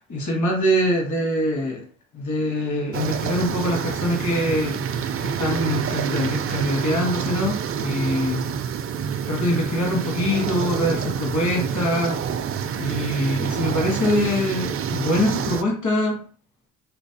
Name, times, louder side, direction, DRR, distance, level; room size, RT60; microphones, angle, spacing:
voice 1, 0.1-1.8 2.1-4.8 5.2-8.4 9.3-12.2 12.8-16.2, left 1 dB, 50° left, 0 dB, 1.5 m, -24 dB
sound 1, 2.9-15.6, right 7 dB, 40° right, 0.4 m, -27 dB
3.2 x 3.0 x 2.9 m, 0.40 s
cardioid pair, 80°, 38 cm